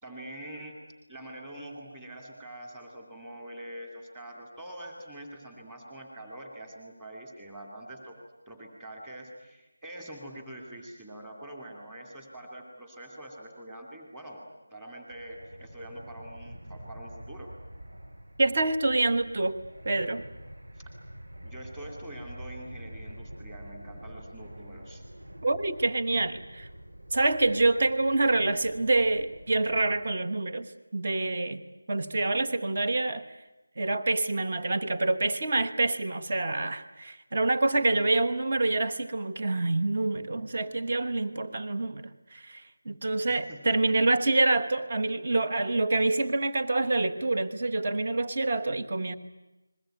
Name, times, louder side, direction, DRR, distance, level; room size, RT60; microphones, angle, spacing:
voice 1, 0.0-0.7 1.1-8.2 8.5-14.4 14.7-17.5 20.8-20.9 21.4-25.0 43.3-43.9, right 1 dB, 5° right, 1 dB, 2.5 m, -44 dB
Fixed-wing aircraft airplane, 15.1-30.2, right 1 dB, 75° right, 5.1 m, -46 dB
voice 2, 18.4-19.6 19.8-20.2 25.4-26.7 27.1-31.6 31.9-33.2 33.8-49.1, right 2 dB, 25° right, 7 dB, 1.3 m, -27 dB
29.5 x 21.5 x 9.1 m, 1.0 s
figure-of-eight pair, 180°, 0 cm